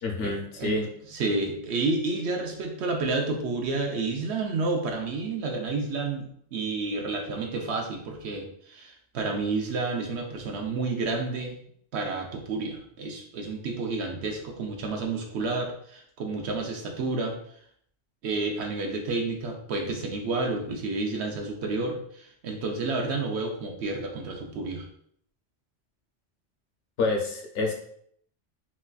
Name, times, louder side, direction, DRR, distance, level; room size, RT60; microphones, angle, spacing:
voice 1, 0.0-0.9 27.0-27.7, left 3 dB, 85° left, 1 dB, 1.0 m, -28 dB
voice 2, 1.1-11.5 11.9-17.4 18.2-24.9, right 3 dB, 70° right, 2 dB, 0.9 m, -30 dB
4.0 x 2.4 x 2.2 m, 0.66 s
omnidirectional pair, 1.2 m